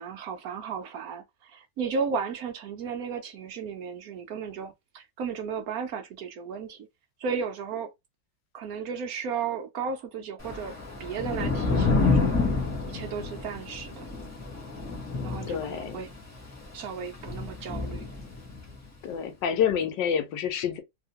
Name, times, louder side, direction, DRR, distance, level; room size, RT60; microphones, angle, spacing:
voice 1, 0.0-6.9 7.2-7.9 8.5-10.7 11.0-12.4 12.8-14.1 15.2-16.1 16.7-18.1, right 6 dB, 70° right, 1.0 m, -34 dB
Thunder / Rain, 10.4-18.8, left 3 dB, 15° left, 0.7 m, -29 dB
voice 2, 15.5-16.1 19.0-20.8, left 8 dB, 85° left, 1.4 m, -28 dB
3.0 x 2.8 x 2.8 m
omnidirectional pair, 1.8 m